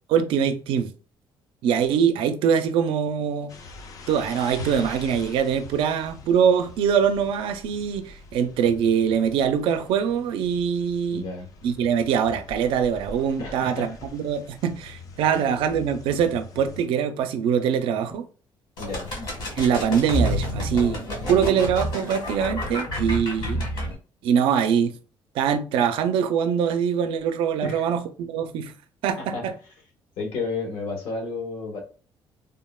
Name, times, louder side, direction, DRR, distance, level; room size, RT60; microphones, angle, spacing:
voice 1, 0.1-0.9 1.6-3.6 4.1-11.3 11.6-18.3 19.6-23.6 24.2-25.0 25.3-28.7 29.0-29.5, right 7 dB, 80° right, 0.4 m, -23 dB
sound 1, 3.5-16.9, left 3 dB, 40° left, 0.3 m, -43 dB
voice 2, 11.1-11.5 13.4-14.0 15.3-15.6 18.8-19.1 21.2-21.8 27.6-27.9 29.2-29.4 30.2-31.8, left 3 dB, 80° left, 1.0 m, -32 dB
sound 2, 18.8-23.9, equal, 60° left, 1.2 m, -29 dB
3.4 x 2.1 x 2.2 m
cardioid pair, 165°, 9 cm